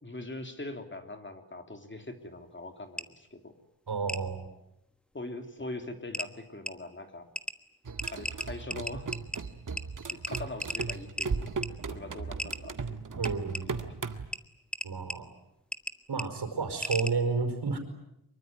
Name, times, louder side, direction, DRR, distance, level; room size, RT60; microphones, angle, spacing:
voice 1, 0.0-3.6 5.1-7.3 8.1-9.1 10.1-11.5 11.9-13.9, left 2 dB, 30° left, 6 dB, 3.1 m, -42 dB
sound 1, 3.0-3.1 4.1-4.2 5.6-5.7 6.1-6.3 6.7-6.8 7.4-7.5 8.0-9.4 9.8-9.9 10.1-11.3 11.6-11.7 12.4-12.6 13.2-13.6 14.3-14.4 14.7-15.2 15.7-16.3 16.8-17.1, equal, ahead, 1.3 m, -34 dB
voice 2, 3.9-4.5 13.2-13.7 14.8-15.3 16.1-17.8, right 4 dB, 80° right, 8 dB, 4.9 m, -31 dB
sound 2, 7.8-14.3, right 4 dB, 50° right, 1.9 m, -37 dB
24.5 x 23.0 x 9.4 m, 0.83 s
wide cardioid pair, 120°, 39 cm